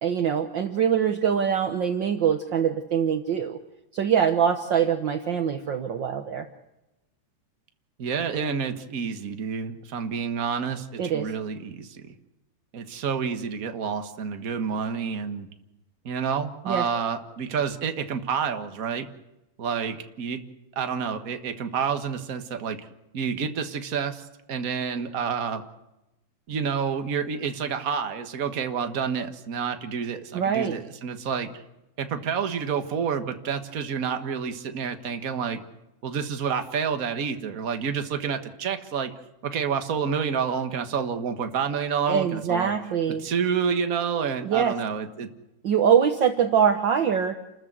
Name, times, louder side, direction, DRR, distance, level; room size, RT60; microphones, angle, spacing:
voice 1, 0.0-3.6 3.9-6.5 11.0-11.3 16.6-16.9 30.3-30.8 42.1-43.2 44.4-44.7 45.6-47.4, right 8 dB, 65° right, 7 dB, 1.1 m, -23 dB
voice 2, 8.0-12.1 12.7-15.5 16.0-19.1 19.6-20.4 20.7-22.8 23.1-25.6 26.5-31.6 32.0-35.6 36.0-39.1 39.4-42.7 43.1-45.3, right 6 dB, 40° right, 8 dB, 1.2 m, -29 dB
29.0 x 14.0 x 8.1 m, 0.94 s
omnidirectional pair, 3.6 m